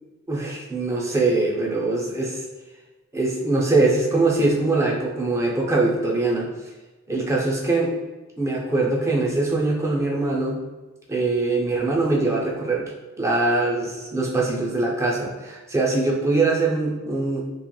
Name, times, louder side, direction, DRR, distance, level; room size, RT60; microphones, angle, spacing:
voice 1, 0.3-2.4 3.1-6.5 7.1-7.9 8.4-10.6 11.1-12.9 13.2-17.4, right 2 dB, 15° right, -2 dB, 0.4 m, -22 dB
2.9 x 2.8 x 2.2 m, 1.2 s
head